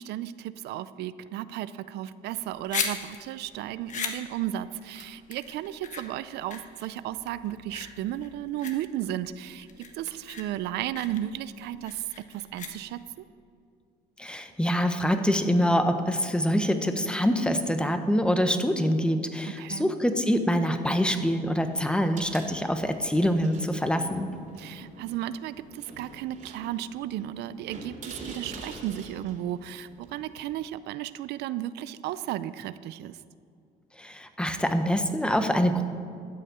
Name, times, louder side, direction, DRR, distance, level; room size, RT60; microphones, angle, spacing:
voice 1, 0.0-9.7 10.0-13.0 19.6-19.9 24.6-33.2, right 12 dB, 80° right, 15 dB, 0.5 m, -34 dB
sound 1, 2.3-13.2, left 5 dB, 45° left, 1.4 m, -38 dB
voice 2, 14.2-24.3 34.0-35.8, equal, 5° left, 7 dB, 1.0 m, -25 dB
sound 2, 21.9-30.6, right 2 dB, 50° right, 2.8 m, -46 dB
13.0 x 6.5 x 8.9 m, 2.4 s
cardioid pair, 110°, 17 cm